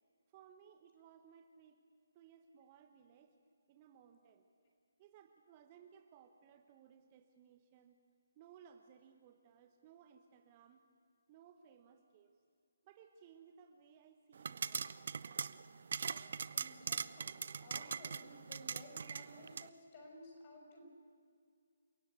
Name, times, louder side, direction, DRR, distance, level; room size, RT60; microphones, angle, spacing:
voice 1, 0.3-1.8 2.1-3.4 3.7-4.5 5.0-8.0 8.3-10.8 11.3-12.3 12.8-14.9, right 8 dB, 25° right, 7 dB, 1.1 m, -62 dB
popping corn, 14.4-19.7, right 6 dB, 50° right, 0.6 m, -42 dB
voice 2, 16.5-17.3 17.6-20.9, left 1 dB, 30° left, 1 dB, 6.4 m, -56 dB
29.0 x 17.0 x 8.2 m, 2.2 s
figure-of-eight pair, 140°, 0 cm